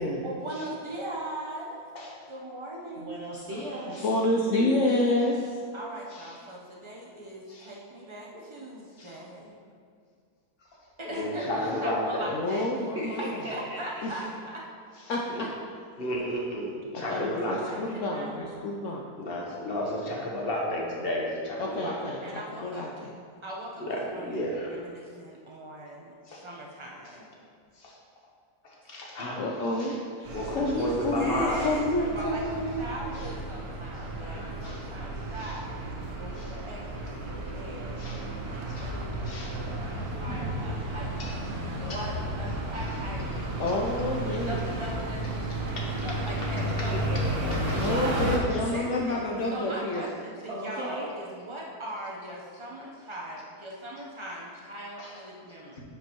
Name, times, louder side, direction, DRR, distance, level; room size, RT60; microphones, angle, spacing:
voice 1, 0.2-1.8 2.3-3.2 5.7-9.6 11.0-12.7 13.2-14.5 15.4-15.5 17.6-18.4 22.2-22.8 23.4-27.3 30.9-35.8 36.2-41.4 41.8-43.5 44.4-46.9 48.6-55.8, right 1 dB, 30° right, -3 dB, 0.6 m, -40 dB
voice 2, 3.0-3.9 12.9-13.8 46.9-48.7 50.5-51.1, right 1 dB, 50° right, -5 dB, 0.9 m, -36 dB
voice 3, 3.9-5.6 12.3-13.2 14.0-14.1 15.1-15.5 16.9-19.0 21.6-23.1 29.4-32.9 43.6-44.6 47.8-50.0, left 1 dB, 70° left, -1 dB, 0.7 m, -29 dB
voice 4, 11.0-12.3 15.3-15.4 16.0-17.8 19.2-21.9 23.8-24.8 26.3-26.4 27.8-27.9 28.9-29.4 29.8-29.9 30.3-31.7 34.2-34.8 35.4-35.5 36.4-36.5 38.0-38.2 38.7-38.9 39.3-39.5 40.3-40.4 41.2-41.3 45.8-45.9 47.7-47.9 55.0-55.1, equal, 40° left, -2 dB, 1.2 m, -32 dB
sound 1, 30.2-48.4, right 1 dB, 65° right, 1.4 m, -33 dB
9.6 x 5.1 x 3.0 m, 2.1 s
omnidirectional pair, 1.8 m